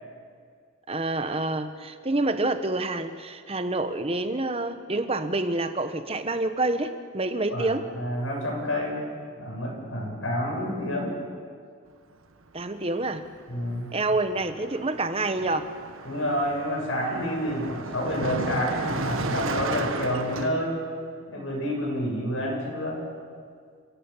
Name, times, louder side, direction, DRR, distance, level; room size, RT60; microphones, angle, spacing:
voice 1, 0.9-7.9 12.5-13.2 13.9-15.7, right 2 dB, 30° right, 9 dB, 1.2 m, -27 dB
voice 2, 7.5-9.0 9.4-11.1 13.5-13.9 16.0-20.8 21.3-23.0, equal, 80° left, -1 dB, 7.4 m, -29 dB
Car passing by, 13.0-13.2 13.5-20.5, right 3 dB, 90° right, 1.5 m, -33 dB
29.0 x 16.5 x 7.3 m, 2.1 s
head